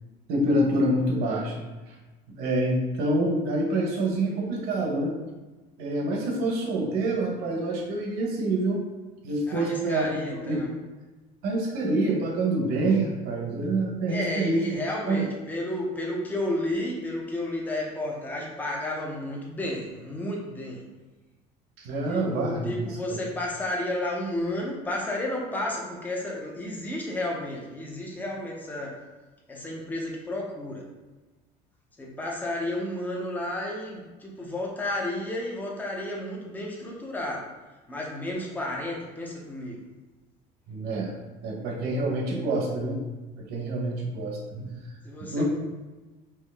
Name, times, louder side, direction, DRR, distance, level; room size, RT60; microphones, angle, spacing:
voice 1, 0.3-1.9 2.4-5.1 5.8-8.8 9.2-10.1 10.5-10.6 11.4-14.7 15.1-15.3 21.8-22.7 23.1-23.2 40.7-41.1 41.4-43.0 43.3-44.7 45.2-45.4, right 2 dB, 65° right, 0 dB, 1.0 m, -26 dB
voice 2, 9.5-10.7 14.1-20.8 22.1-28.9 29.5-30.8 32.0-37.4 37.9-39.8 45.0-45.4, left 1 dB, 10° left, -2 dB, 0.7 m, -32 dB
4.6 x 2.8 x 3.5 m, 1.2 s
cardioid pair, 155°, 17 cm